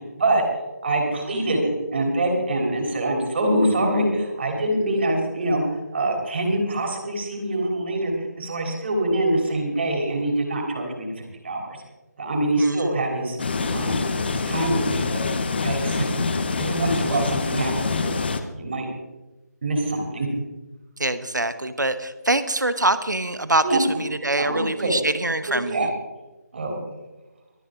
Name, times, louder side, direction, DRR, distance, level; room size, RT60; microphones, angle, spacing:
voice 1, 0.8-5.6 5.9-11.8 12.2-13.4 13.7-14.1 14.3-15.2 15.6-16.1 16.6-18.2 18.6-18.9 19.6-20.3 23.6-23.8 24.4-24.9 25.5-25.9 26.5-26.8, right 1 dB, 35° right, 2 dB, 3.4 m, -24 dB
sound 1, 13.4-18.4, left 4 dB, 35° left, 1.0 m, -25 dB
voice 2, 21.0-25.9, right 2 dB, 80° right, 13 dB, 1.2 m, -24 dB
24.5 x 8.8 x 3.7 m, 1.1 s
figure-of-eight pair, 160°, 10 cm